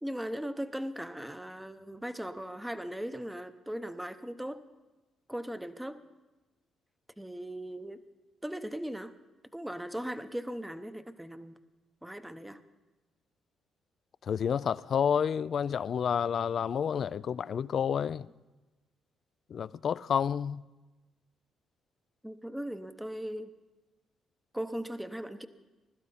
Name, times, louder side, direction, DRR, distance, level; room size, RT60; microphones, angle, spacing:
voice 1, 0.0-4.6 5.3-6.0 7.2-8.0 8.4-9.1 9.5-11.6 12.0-12.6 22.2-23.5 24.5-25.5, equal, 5° right, 0.8 m, -38 dB
voice 2, 14.2-18.3 19.5-20.6, left 7 dB, 55° left, 0.4 m, -29 dB
21.0 x 12.0 x 4.1 m
cardioid pair, 90°, 0 cm